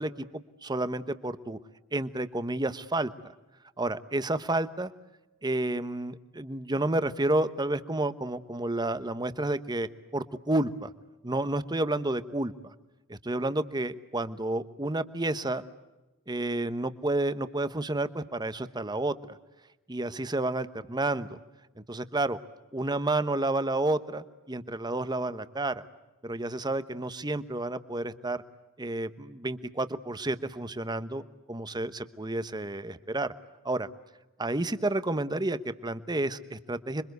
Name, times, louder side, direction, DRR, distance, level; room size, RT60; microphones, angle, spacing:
voice 1, 0.0-1.6 1.9-3.1 3.8-4.9 5.4-10.9 11.2-12.7 13.1-15.6 16.3-19.4 19.9-21.3 21.9-22.4 22.7-25.8 26.2-28.4 28.8-31.2 31.5-33.3 33.6-33.9 34.4-37.0, right 2 dB, 20° right, 12 dB, 1.1 m, -30 dB
27.0 x 24.0 x 8.1 m, 1.1 s
head